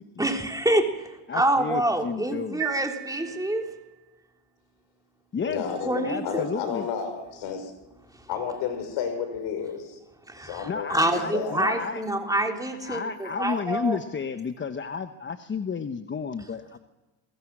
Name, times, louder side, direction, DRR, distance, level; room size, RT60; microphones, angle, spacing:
voice 1, 0.2-3.8 5.8-6.5 10.3-14.0, right 1 dB, 10° right, 3 dB, 3.4 m, -27 dB
voice 2, 1.3-2.6 5.3-5.6 6.0-6.9 10.7-12.0 12.8-16.8, left 5 dB, 25° left, 8 dB, 1.1 m, -32 dB
sound 1, 2.6-4.1, right 17 dB, 85° right, 4.3 m, -36 dB
voice 3, 5.4-7.7 8.3-10.0 10.4-11.8, left 7 dB, 70° left, 8 dB, 5.6 m, -32 dB
27.5 x 22.5 x 6.2 m, 1.1 s
supercardioid pair, 105°, 46 cm